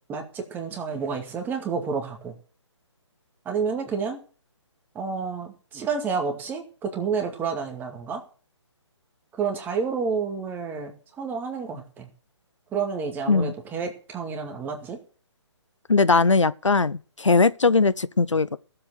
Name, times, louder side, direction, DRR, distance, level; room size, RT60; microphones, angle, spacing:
voice 1, 0.1-2.4 3.5-4.2 4.9-8.2 9.4-12.1 12.7-15.0, right 5 dB, 10° right, 2.2 m, -29 dB
voice 2, 15.9-18.6, left 4 dB, 85° left, 0.6 m, -20 dB
15.5 x 7.9 x 6.4 m
figure-of-eight pair, 135°, 15 cm